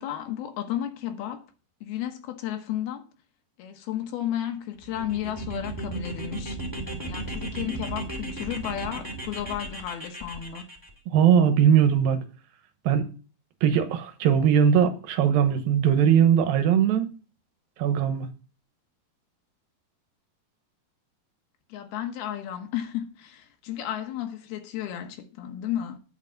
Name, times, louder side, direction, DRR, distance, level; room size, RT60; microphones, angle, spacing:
voice 1, 0.0-1.4 1.8-3.0 3.6-6.6 7.1-10.7 21.7-26.0, left 11 dB, 85° left, 3.2 m, -33 dB
sound 1, 4.8-10.9, right 2 dB, 10° right, 1.5 m, -35 dB
voice 2, 11.1-12.2 12.9-13.1 13.6-17.1 17.8-18.3, right 8 dB, 75° right, 2.8 m, -20 dB
9.7 x 6.6 x 7.2 m
omnidirectional pair, 4.3 m